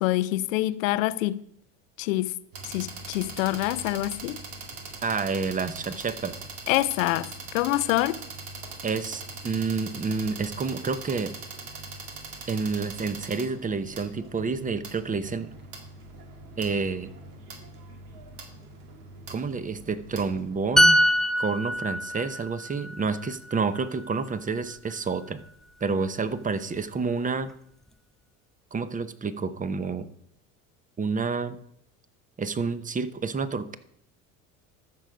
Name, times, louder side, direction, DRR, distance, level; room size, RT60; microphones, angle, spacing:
voice 1, 0.0-1.4 2.0-2.3 2.6-4.4 6.7-8.2, left 16 dB, 75° left, 0.6 m, -26 dB
sound 1, 2.5-20.9, right 3 dB, 70° right, 2.1 m, -42 dB
voice 2, 5.0-6.4 8.8-11.3 12.5-15.5 16.6-17.1 19.3-21.0 21.4-25.4 25.8-27.5 28.7-30.1 31.0-31.6 32.4-33.8, right 4 dB, 20° right, 0.9 m, -29 dB
sound 2, 20.8-24.4 24.7-24.9, equal, ahead, 0.4 m, -24 dB
14.0 x 6.4 x 5.1 m
hypercardioid pair, 75°, 40 cm